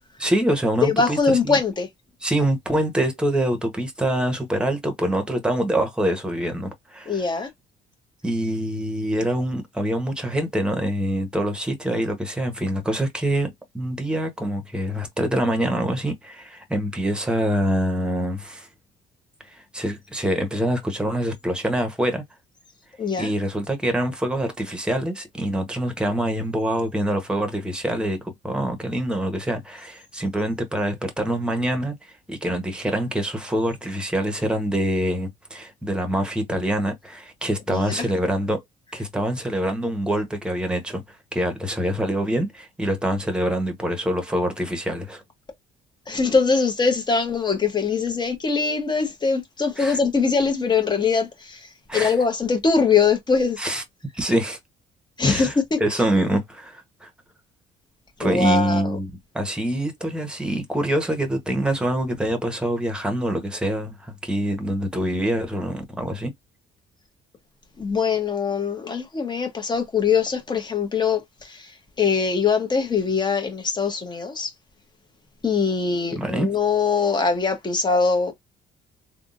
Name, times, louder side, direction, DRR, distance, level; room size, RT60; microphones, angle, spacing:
voice 1, 0.2-1.6 2.2-7.2 8.2-18.7 19.5-22.2 23.2-31.9 32.3-38.6 38.9-45.2 49.8-50.0 51.9-52.1 53.6-53.8 54.1-54.6 55.3-55.5 55.8-57.1 58.2-66.3 76.1-76.5, right 1 dB, 5° right, 1.1 m, -25 dB
voice 2, 0.8-1.9 7.1-7.5 23.0-23.3 37.7-38.1 46.1-51.7 51.9-53.6 55.2-55.8 58.2-59.0 67.8-71.7 72.0-74.5 75.4-78.3, left 5 dB, 25° left, 1.3 m, -22 dB
3.5 x 2.4 x 2.6 m
cardioid pair, 110°, 17 cm